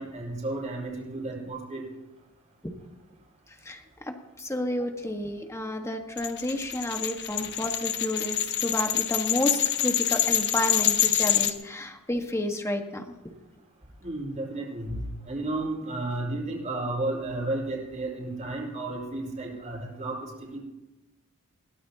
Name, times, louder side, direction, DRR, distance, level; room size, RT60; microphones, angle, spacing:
voice 1, 0.0-1.8 14.0-15.0 15.2-20.6, right 2 dB, 35° right, -3 dB, 5.0 m, -33 dB
voice 2, 4.1-13.0, left 1 dB, 15° left, 4 dB, 1.6 m, -31 dB
sound 1, 6.2-11.5, left 11 dB, 50° left, 1.1 m, -26 dB
21.5 x 17.0 x 2.9 m, 1.0 s
head